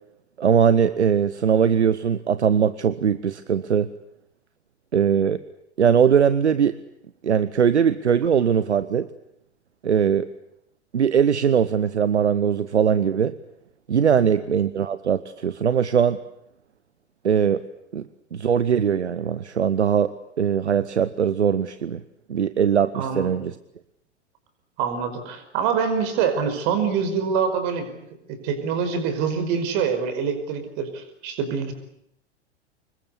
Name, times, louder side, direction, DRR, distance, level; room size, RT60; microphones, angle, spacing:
voice 1, 0.4-3.9 4.9-5.4 5.8-6.8 7.2-9.1 9.8-10.3 10.9-13.3 13.9-16.2 17.2-17.6 17.9-20.1 20.4-22.0 22.3-23.5, right 7 dB, 75° right, 14 dB, 1.0 m, -20 dB
voice 2, 22.9-23.3 24.8-27.9 28.3-31.7, right 6 dB, 45° right, 9 dB, 5.4 m, -25 dB
26.0 x 22.0 x 8.4 m, 0.78 s
figure-of-eight pair, 95°, 35 cm